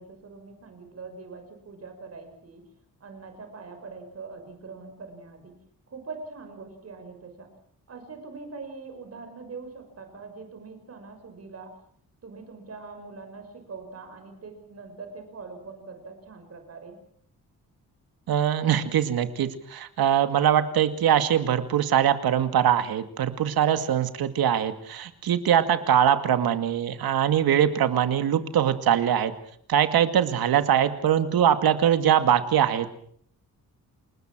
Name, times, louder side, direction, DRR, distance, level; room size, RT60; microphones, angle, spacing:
voice 1, 0.0-2.6 3.0-5.5 5.9-7.5 7.9-11.7 12.2-17.0, right 4 dB, 45° right, 6 dB, 5.9 m, -42 dB
voice 2, 18.3-29.3 29.7-32.9, right 9 dB, 85° right, 9 dB, 2.3 m, -22 dB
28.5 x 20.5 x 6.3 m, 0.62 s
wide cardioid pair, 145°, 36 cm